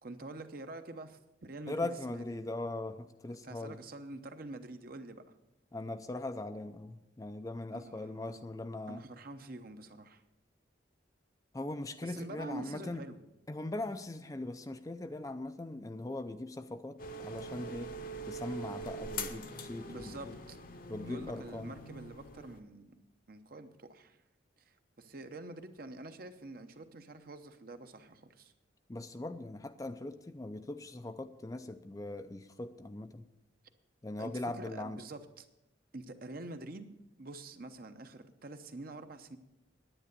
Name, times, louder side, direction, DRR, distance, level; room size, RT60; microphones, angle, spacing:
voice 1, 0.0-2.2 3.4-5.2 7.7-8.4 8.9-10.2 12.0-13.2 19.9-20.6 21.0-23.0 23.3-24.2 24.6-28.5 34.2-35.5 35.9-39.4, right 2 dB, 50° right, 8 dB, 0.8 m, -47 dB
voice 2, 1.7-3.8 5.7-9.0 11.5-13.0 13.5-18.0 18.2-20.4 20.9-21.7 28.9-33.3 34.0-35.0, left 2 dB, 20° left, 9 dB, 0.4 m, -40 dB
sound 1, 17.0-22.6, equal, 45° left, 0.9 m, -43 dB
10.0 x 9.5 x 6.7 m, 0.93 s
head